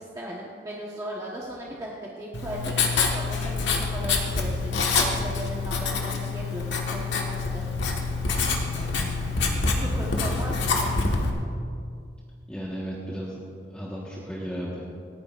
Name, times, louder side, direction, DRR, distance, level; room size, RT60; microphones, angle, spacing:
voice 1, 0.0-7.6 9.8-11.0, right 1 dB, 15° right, -5 dB, 1.2 m, -37 dB
Writing, 2.3-11.3, left 4 dB, 75° left, 1.5 m, -26 dB
voice 2, 9.3-10.0 12.5-13.4 13.7-14.8, equal, 5° left, -7 dB, 1.4 m, -35 dB
28.0 x 9.7 x 2.5 m, 2.3 s
head